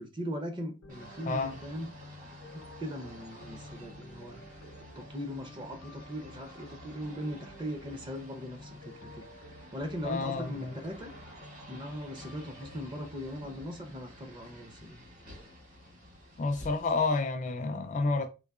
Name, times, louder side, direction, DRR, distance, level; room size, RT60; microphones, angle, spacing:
voice 1, 0.0-1.9 2.5-9.2 9.7-11.1 11.7-15.0, equal, 20° right, 0.5 m, -40 dB
sound 1, 0.8-13.6, left 1 dB, 90° left, 0.6 m, -51 dB
sound 2, 0.9-17.2, equal, 40° right, 1.2 m, -52 dB
voice 2, 1.3-1.6 10.0-10.7 16.4-18.3, left 3 dB, 35° left, 0.3 m, -30 dB
3.8 x 2.6 x 2.4 m
head